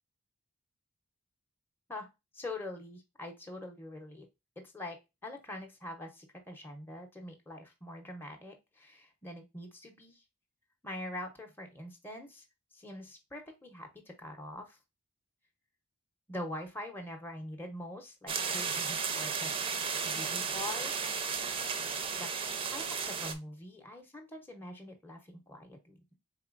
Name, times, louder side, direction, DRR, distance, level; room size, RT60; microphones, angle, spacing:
voice 1, 2.3-4.3 4.6-10.2 10.8-12.4 12.7-14.8 16.3-19.5 20.0-20.9 22.2-22.3 22.7-26.0, left 1 dB, 10° left, 2 dB, 0.7 m, -44 dB
sound 1, 18.3-23.3, right 6 dB, 25° right, 0.5 m, -34 dB
4.3 x 3.8 x 2.4 m, 0.23 s
head